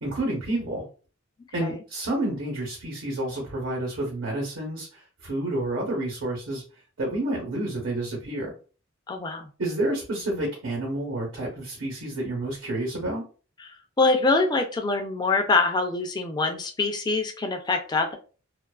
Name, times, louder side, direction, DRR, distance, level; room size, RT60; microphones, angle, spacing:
voice 1, 0.0-0.8 1.5-6.6 7.0-8.5 9.6-13.2, right 1 dB, 75° right, -2 dB, 0.9 m, -29 dB
voice 2, 9.1-9.5 13.6-18.2, left 3 dB, 20° left, 4 dB, 0.3 m, -24 dB
2.4 x 2.3 x 2.3 m, 0.37 s
head